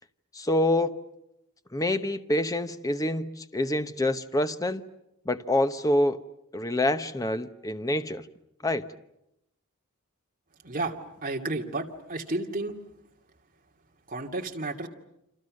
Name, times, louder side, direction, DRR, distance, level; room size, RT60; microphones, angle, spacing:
voice 1, 0.3-1.0 1.7-4.8 5.3-6.2 6.5-8.3 8.6-8.9, left 1 dB, 15° left, 0.9 m, -26 dB
voice 2, 10.6-11.0 11.2-12.7 14.1-14.9, right 2 dB, 40° right, 2.6 m, -32 dB
29.0 x 26.5 x 6.5 m
head